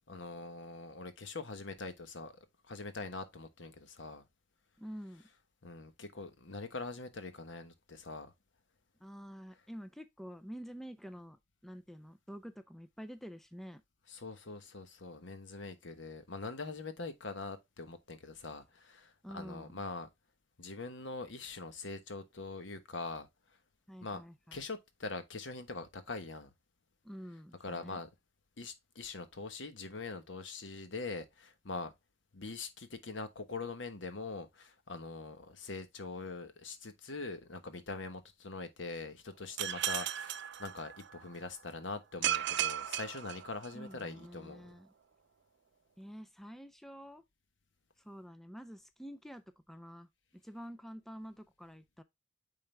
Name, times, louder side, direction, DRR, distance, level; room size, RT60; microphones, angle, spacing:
voice 1, 0.1-4.2 5.6-8.3 14.1-20.1 20.6-23.3 24.0-24.2 24.5-26.5 27.6-28.1 28.6-31.9 32.3-44.7, left 3 dB, 75° left, 1.2 m, -43 dB
voice 2, 4.8-5.3 9.0-13.8 19.2-19.8 23.9-24.6 27.0-28.0 43.7-44.9 46.0-47.2 48.0-52.0, equal, ahead, 0.5 m, -48 dB
sound 1, 39.6-41.3 42.2-44.0, right 11 dB, 65° right, 0.5 m, -35 dB
8.9 x 3.8 x 3.3 m
head